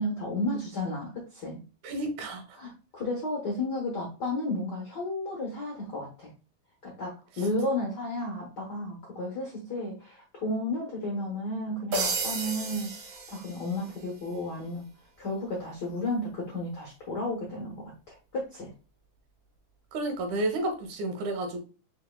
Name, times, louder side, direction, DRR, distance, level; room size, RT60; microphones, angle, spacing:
voice 1, 0.0-1.6 2.5-6.3 6.8-12.9 13.3-14.9 15.2-18.7, left 1 dB, 65° left, -1 dB, 1.0 m, -33 dB
voice 2, 1.8-2.4 19.9-21.6, right 1 dB, 75° right, 5 dB, 2.4 m, -31 dB
sound 1, 11.9-14.0, right 3 dB, 60° right, 2.0 m, -32 dB
5.5 x 4.1 x 2.2 m, 0.35 s
omnidirectional pair, 3.5 m